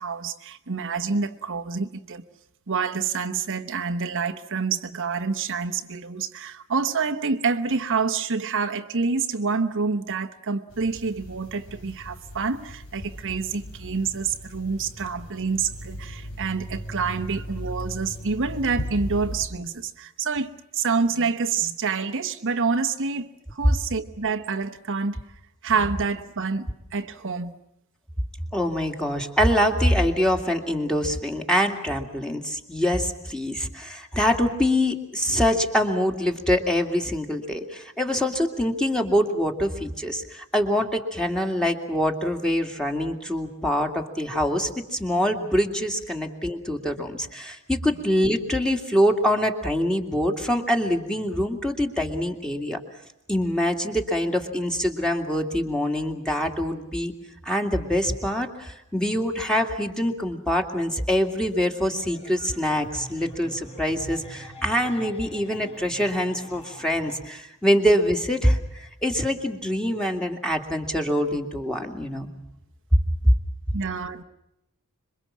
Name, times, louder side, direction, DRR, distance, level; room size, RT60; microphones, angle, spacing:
voice 1, 0.0-2.2 2.7-27.5 73.7-74.2, right 5 dB, 60° right, 7 dB, 1.0 m, -27 dB
sound 1, 10.7-19.4, equal, 85° left, 4.2 m, -37 dB
voice 2, 28.5-52.8 53.3-57.1 57.4-72.3, equal, 5° left, 4 dB, 2.3 m, -24 dB
sound 2, 62.0-67.2, equal, 25° left, 3.8 m, -44 dB
26.5 x 23.0 x 7.4 m, 0.83 s
head